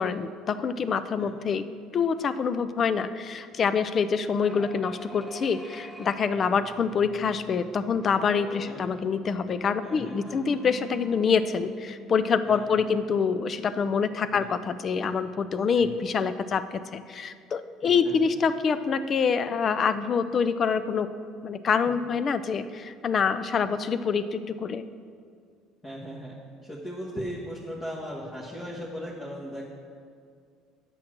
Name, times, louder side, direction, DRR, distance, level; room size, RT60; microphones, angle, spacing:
voice 1, 0.0-1.7 1.9-21.1 21.4-24.9, left 6 dB, 40° left, 13 dB, 0.4 m, -26 dB
sound 1, 4.4-13.2, equal, 5° left, 0.8 m, -45 dB
voice 2, 9.8-10.4 12.5-12.9 14.3-14.5 15.7-15.9 17.8-18.3 25.8-26.4 26.6-29.6, equal, 20° left, -5 dB, 1.3 m, -38 dB
8.8 x 6.2 x 6.1 m, 2.1 s
cardioid pair, 105°, 0 cm